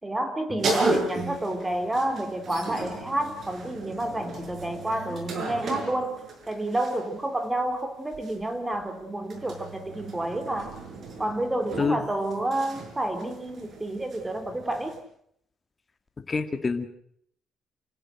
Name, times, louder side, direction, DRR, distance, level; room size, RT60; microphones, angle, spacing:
voice 1, 0.0-6.2 6.5-10.7 11.2-14.9, right 1 dB, 10° right, 8 dB, 3.3 m, -29 dB
sound 1, 0.6-7.2 8.1-15.0, right 2 dB, 45° right, 6.3 m, -35 dB
voice 2, 16.2-16.9, left 4 dB, 25° left, 8 dB, 1.8 m, -27 dB
28.0 x 17.0 x 7.7 m, 0.69 s
cardioid pair, 135°, 0 cm